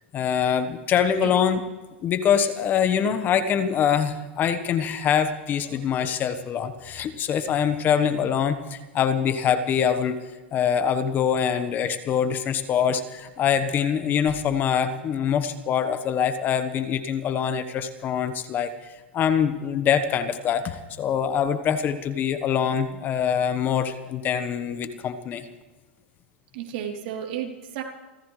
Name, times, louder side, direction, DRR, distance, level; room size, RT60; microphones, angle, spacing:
voice 1, 0.1-1.6 2.0-10.2 10.5-18.7 19.1-25.5, left 8 dB, 30° left, 10 dB, 1.3 m, -24 dB
voice 2, 26.5-27.8, right 9 dB, 60° right, 1 dB, 3.5 m, -33 dB
29.5 x 14.5 x 3.3 m, 1.2 s
hypercardioid pair, 125°, 6 cm